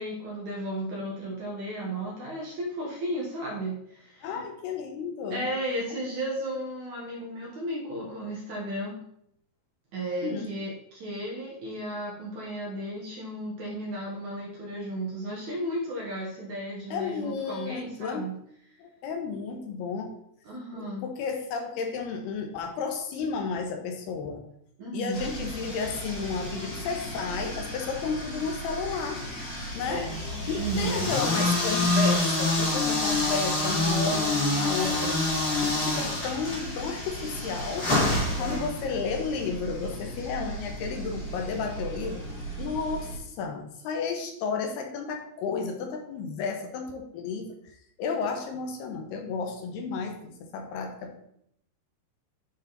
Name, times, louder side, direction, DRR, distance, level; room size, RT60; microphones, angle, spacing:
voice 1, 0.0-4.4 5.3-9.0 9.9-18.3 20.4-21.1 24.8-25.2 29.9-30.2 30.6-31.1 38.4-38.7, right 1 dB, 60° right, -3 dB, 2.2 m, -34 dB
voice 2, 4.2-5.5 5.9-6.0 10.2-10.5 16.9-18.3 18.8-20.2 20.7-24.4 24.9-29.2 29.7-30.1 30.5-35.2 35.6-37.9 38.2-42.2 42.6-47.6 48.0-51.2, left 5 dB, 75° left, 4 dB, 2.7 m, -32 dB
sound 1, 25.1-43.2, left 2 dB, 35° left, 2.1 m, -29 dB
9.7 x 5.0 x 4.0 m, 0.72 s
omnidirectional pair, 4.9 m